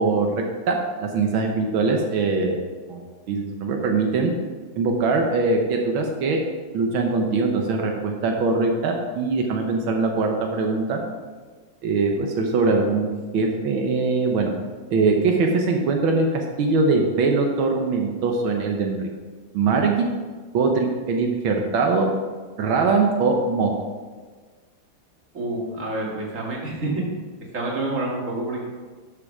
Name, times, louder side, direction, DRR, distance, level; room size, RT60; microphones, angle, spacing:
voice 1, 0.0-2.6 2.9-4.3 4.8-6.4 6.7-11.0 11.8-13.1 13.3-14.5 14.9-19.1 19.5-20.1 20.5-22.1 22.6-23.7, right 4 dB, 85° right, 2 dB, 1.9 m, -22 dB
voice 2, 25.3-26.9 27.5-28.6, right 2 dB, 40° right, -2 dB, 2.6 m, -28 dB
12.0 x 7.6 x 4.9 m, 1.4 s
omnidirectional pair, 2.2 m